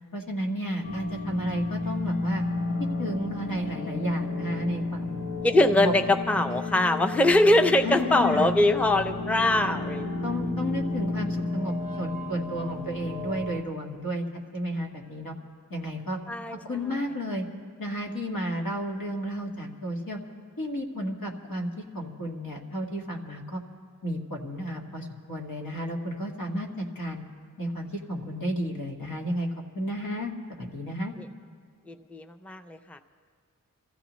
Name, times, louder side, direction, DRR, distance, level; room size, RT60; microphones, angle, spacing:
voice 1, 0.1-2.4 3.0-5.2 5.8-5.9 7.8-8.5 10.2-14.2 14.5-15.3 15.7-16.2 16.5-17.4 17.8-20.2 20.6-23.6 24.0-27.2 27.6-29.5 29.7-31.1, equal, 90° left, 0 dB, 1.8 m, -32 dB
sound 1, 0.8-13.6, left 3 dB, 70° left, 1.1 m, -32 dB
voice 2, 5.4-10.1 16.3-16.6 31.2-31.3 31.9-33.0, left 1 dB, 5° left, 8 dB, 0.5 m, -22 dB
27.0 x 14.5 x 3.1 m, 2.2 s
wide cardioid pair, 75°, 34 cm